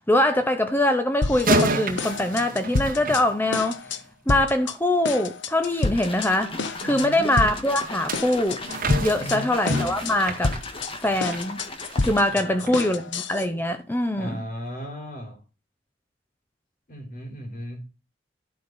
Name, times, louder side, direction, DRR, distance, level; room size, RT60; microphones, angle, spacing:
voice 1, 0.1-3.8 4.3-8.6 9.0-10.6 11.0-11.6 12.0-14.4, left 1 dB, 10° left, 0.8 m, -23 dB
sound 1, 1.2-1.7 2.0-3.2 3.5-4.0 4.3-4.7 5.0-6.3 6.6-7.1 7.4-7.8 8.1-9.4 9.7-10.1 10.4-13.5, left 3 dB, 65° left, 1.1 m, -28 dB
sound 2, 1.3-3.9 7.7-11.5 11.9-12.1 12.7-12.8, right 1 dB, 50° right, 2.0 m, -28 dB
sound 3, 5.6-12.5, left 2 dB, 30° left, 1.8 m, -38 dB
voice 2, 6.8-7.3 9.2-9.5 12.3-13.0 14.1-15.4 16.9-17.8, equal, 50° left, 4.5 m, -36 dB
11.5 x 6.1 x 5.4 m
head